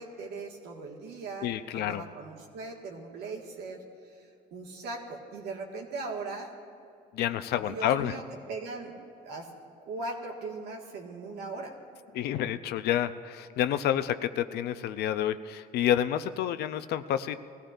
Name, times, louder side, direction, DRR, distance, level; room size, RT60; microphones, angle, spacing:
voice 1, 0.0-6.5 7.7-8.2 8.5-8.9 9.2-9.5 9.9-11.8, right 3 dB, 85° right, -1 dB, 1.8 m, -39 dB
voice 2, 1.4-2.0 7.1-8.1 12.1-17.4, left 11 dB, 75° left, 11 dB, 0.6 m, -29 dB
20.5 x 15.5 x 2.6 m, 2.5 s
cardioid pair, 110°, 17 cm